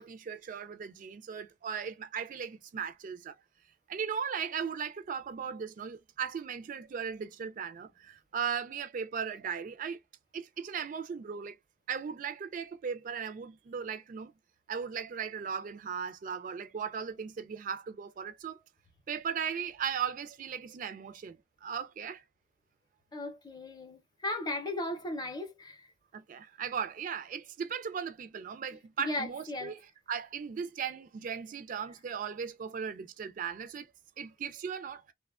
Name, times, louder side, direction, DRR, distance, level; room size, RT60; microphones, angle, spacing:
voice 1, 0.0-3.4 3.9-10.0 10.3-11.6 11.9-14.3 14.7-18.6 19.1-22.2 26.1-33.9 34.2-35.1, right 7 dB, 45° right, 0.3 m, -37 dB
voice 2, 23.1-25.8 29.0-29.7, left 2 dB, 20° left, 0.6 m, -36 dB
2.9 x 2.1 x 2.3 m
head